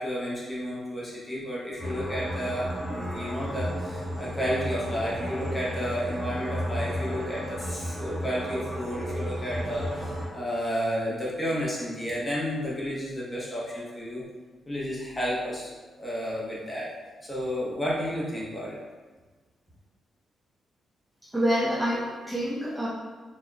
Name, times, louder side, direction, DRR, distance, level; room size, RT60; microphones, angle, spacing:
voice 1, 0.0-14.2 14.7-15.7 16.0-16.9 17.3-18.8, equal, 20° left, -6 dB, 1.1 m, -31 dB
sound 1, 1.8-10.3, equal, 20° right, 1.4 m, -33 dB
voice 2, 21.3-22.9, equal, 5° right, -8 dB, 0.7 m, -27 dB
4.3 x 3.0 x 2.3 m, 1.3 s
cardioid pair, 110°, 0 cm